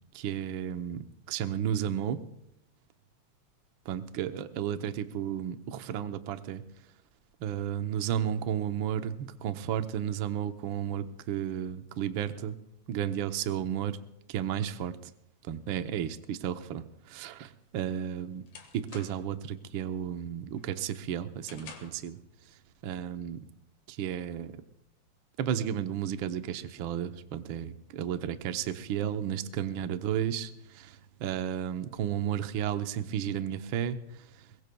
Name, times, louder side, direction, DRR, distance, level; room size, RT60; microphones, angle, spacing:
voice 1, 0.1-1.0 1.3-2.2 3.9-6.6 7.4-12.6 12.9-14.0 14.3-15.0 15.5-18.4 18.7-22.2 22.8-23.4 23.9-24.5 25.4-34.0, right 9 dB, 85° right, 8 dB, 1.1 m, -33 dB
sound 1, 17.6-19.4 19.8-20.2 20.6-22.1, left 5 dB, 75° left, 3.0 m, -50 dB
22.5 x 22.5 x 2.3 m, 0.80 s
omnidirectional pair, 3.4 m